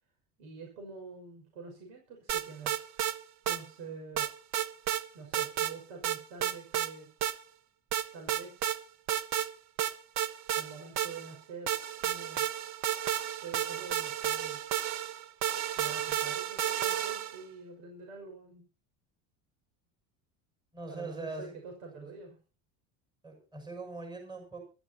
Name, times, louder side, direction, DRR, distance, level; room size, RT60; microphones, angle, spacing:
voice 1, 0.4-2.7 3.5-4.3 5.1-7.1 8.1-8.7 10.5-11.7 12.0-12.4 13.4-14.6 15.7-18.6 20.9-22.4, right 4 dB, 75° right, 3 dB, 6.2 m, -46 dB
sound 1, 2.3-3.1 3.5-3.6 4.2-5.0 5.3-5.7 6.0-6.9 7.2-7.3 7.9-8.8 9.1-9.5 9.8-11.3 11.7-17.4, right 11 dB, 40° right, 1.2 m, -32 dB
voice 2, 20.7-21.4 21.9-22.1 23.2-24.6, right 3 dB, 10° right, 4 dB, 6.6 m, -41 dB
23.0 x 13.0 x 2.9 m, 0.34 s
cardioid pair, 145°, 41 cm